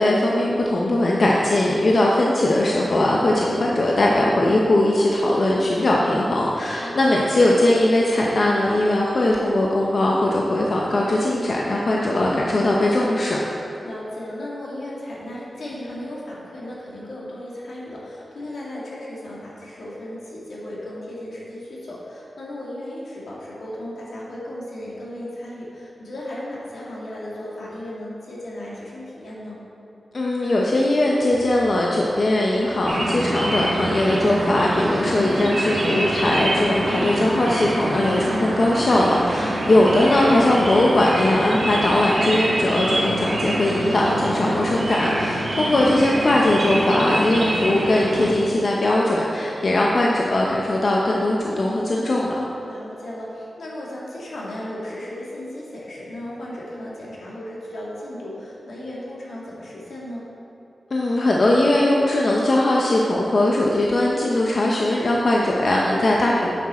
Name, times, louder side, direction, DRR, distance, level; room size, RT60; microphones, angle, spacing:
voice 1, 0.0-13.4 30.1-52.4 60.9-66.5, left 1 dB, 45° left, -3 dB, 0.7 m, -20 dB
voice 2, 6.8-7.3 12.1-12.5 13.8-29.6 36.7-37.2 39.6-40.1 45.6-46.1 52.6-60.3, left 1 dB, 75° left, -5 dB, 2.0 m, -35 dB
sound 1, 31.3-45.4, right 4 dB, 70° right, 0.9 m, -44 dB
sound 2, 32.9-48.3, right 1 dB, 55° right, 1.4 m, -25 dB
10.0 x 6.1 x 4.3 m, 2.9 s
wide cardioid pair, 140°, 0 cm